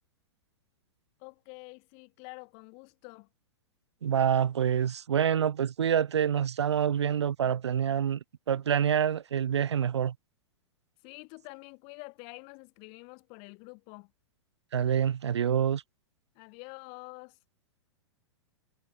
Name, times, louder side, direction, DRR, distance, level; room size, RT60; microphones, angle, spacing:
voice 1, 1.2-3.3 11.0-14.1 16.3-17.4, left 35 dB, 40° left, 3.9 m, -47 dB
voice 2, 4.0-8.2 8.5-10.1 14.7-15.8, right 8 dB, 75° right, 0.4 m, -26 dB
figure-of-eight pair, 105°, 15 cm